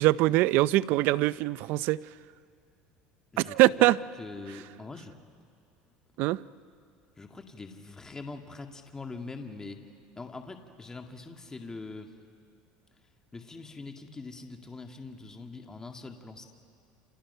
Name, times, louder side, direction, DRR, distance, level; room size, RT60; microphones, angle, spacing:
voice 1, 0.0-2.0 3.4-4.0 6.2-6.4, right 18 dB, 65° right, 19 dB, 0.5 m, -23 dB
voice 2, 3.3-3.9 4.2-5.1 7.2-9.8 10.2-12.1 13.3-16.4, left 3 dB, 15° left, 4 dB, 2.0 m, -43 dB
29.0 x 28.5 x 5.6 m, 2.4 s
supercardioid pair, 105°, 4 cm